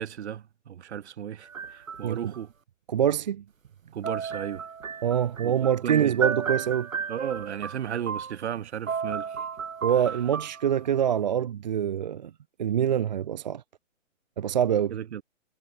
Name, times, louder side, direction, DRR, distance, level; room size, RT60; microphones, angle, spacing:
voice 1, 0.0-2.5 3.9-4.7 5.4-5.5 5.8-6.2 7.1-9.4 14.9-15.2, right 9 dB, 55° right, 4.6 m, -35 dB
sound 1, 1.4-2.4 4.0-8.6 8.9-11.0, right 6 dB, 90° right, 4.6 m, -33 dB
voice 2, 2.9-3.4 5.0-6.9 9.8-12.3 12.6-13.6 14.4-15.0, right 9 dB, 35° right, 0.5 m, -25 dB
hypercardioid pair, 160°, 39 cm